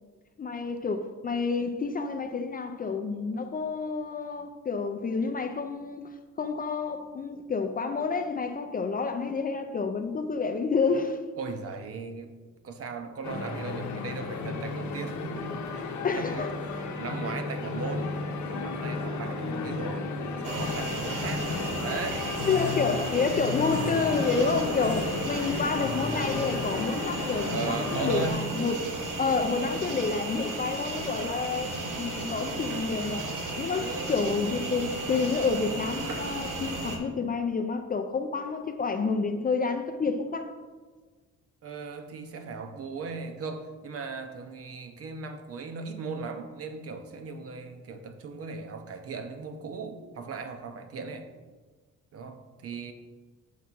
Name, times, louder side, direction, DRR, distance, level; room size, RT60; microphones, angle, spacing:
voice 1, 0.4-6.1 6.4-11.2 16.0-16.5 22.4-28.7 29.2-31.7 32.0-40.5, left 4 dB, 30° left, 0.4 m, -29 dB
voice 2, 11.4-12.3 12.6-15.8 16.1-18.1 18.5-20.1 20.4-21.5 21.8-22.3 23.6-23.7 23.9-24.7 27.5-28.7 33.7-34.1 41.6-51.3 52.1-52.9, right 4 dB, 50° right, 0.7 m, -38 dB
sound 1, 13.2-28.3, left 4 dB, 65° left, 0.8 m, -33 dB
sound 2, 20.4-37.0, right 2 dB, 85° right, 1.2 m, -34 dB
7.3 x 3.4 x 5.9 m
cardioid pair, 155°, 31 cm